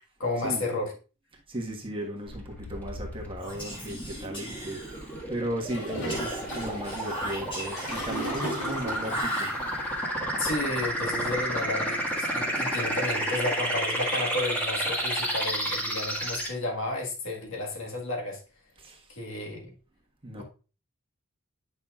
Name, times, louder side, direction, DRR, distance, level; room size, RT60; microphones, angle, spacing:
voice 1, 0.2-0.9 10.4-18.4 19.1-19.7 20.4-20.5, left 2 dB, 65° left, 1.7 m, -32 dB
voice 2, 1.5-9.5 18.8-19.0 20.2-20.4, right 1 dB, 25° right, 1.4 m, -36 dB
sound 1, 2.3-16.5, right 1 dB, 10° left, 1.7 m, -31 dB
Whispering, 3.4-5.3 6.1-8.1 9.0-10.1, right 1 dB, 25° left, 1.7 m, -38 dB
Gurgling / Toilet flush, 5.7-9.4, equal, 85° left, 3.9 m, -36 dB
8.9 x 5.6 x 2.4 m
head